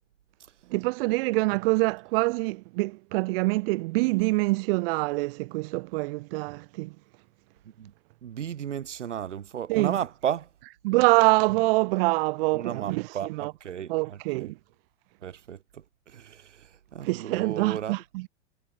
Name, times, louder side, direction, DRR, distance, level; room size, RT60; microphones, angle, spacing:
voice 1, 0.7-6.9 9.7-10.0 10.8-13.5 13.9-14.5 17.0-18.3, right 24 dB, 55° right, 0.9 m, -25 dB
voice 2, 8.2-10.5 12.5-14.5 15.2-17.9, right 9 dB, 80° right, 1.3 m, -34 dB
hypercardioid pair, 90°, 35 cm